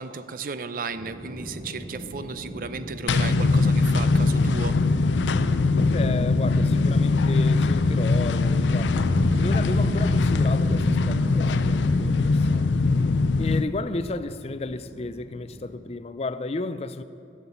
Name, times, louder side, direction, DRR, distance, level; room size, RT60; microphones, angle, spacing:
voice 1, 0.0-4.8, right 4 dB, 50° right, 0.5 m, -34 dB
sound 1, 0.9-15.7, equal, 90° right, 2.2 m, -35 dB
sound 2, 3.1-13.6, left 3 dB, 90° left, 0.5 m, -21 dB
voice 2, 5.9-9.1 9.4-12.8 13.4-17.0, left 3 dB, 35° left, 0.4 m, -33 dB
12.0 x 7.4 x 8.5 m
head